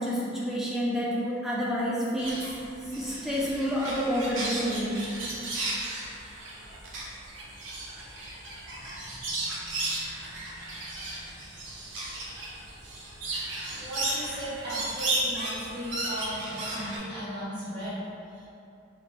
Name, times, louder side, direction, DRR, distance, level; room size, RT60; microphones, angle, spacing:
voice 1, 0.0-2.5 2.9-5.0, equal, ahead, -6 dB, 0.5 m, -29 dB
sound 1, 2.2-17.0, right 2 dB, 75° right, 0.6 m, -35 dB
voice 2, 13.7-18.0 18.3-18.5, right 1 dB, 25° right, -12 dB, 1.1 m, -36 dB
3.0 x 2.4 x 3.4 m, 2.7 s
head